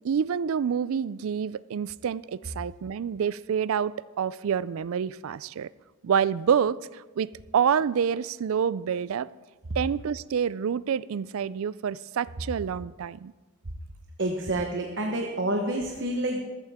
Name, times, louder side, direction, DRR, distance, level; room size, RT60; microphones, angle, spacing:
voice 1, 0.0-5.7 6.0-9.3 9.8-13.3, right 7 dB, 70° right, 19 dB, 0.3 m, -27 dB
voice 2, 14.2-16.4, right 1 dB, 55° right, 2 dB, 1.1 m, -28 dB
14.0 x 13.5 x 3.6 m, 1.3 s
head